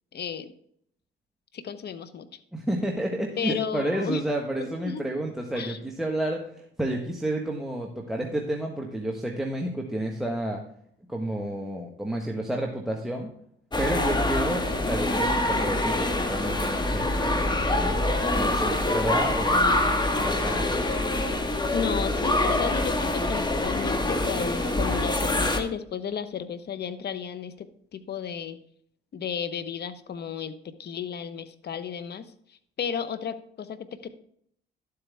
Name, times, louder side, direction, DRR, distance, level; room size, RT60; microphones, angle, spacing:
voice 1, 0.1-0.5 1.5-2.3 3.4-4.2 4.6-5.0 5.5-5.8 21.7-28.6 29.1-32.2 32.8-34.1, left 7 dB, 55° left, 12 dB, 1.1 m, -33 dB
voice 2, 2.5-10.6 11.1-13.3 13.8-18.0 18.3-20.8, right 1 dB, ahead, -1 dB, 1.5 m, -31 dB
sound 1, 13.7-25.6, left 1 dB, 20° left, 1.6 m, -25 dB
12.0 x 8.0 x 3.5 m, 0.65 s
cardioid pair, 90°, 20 cm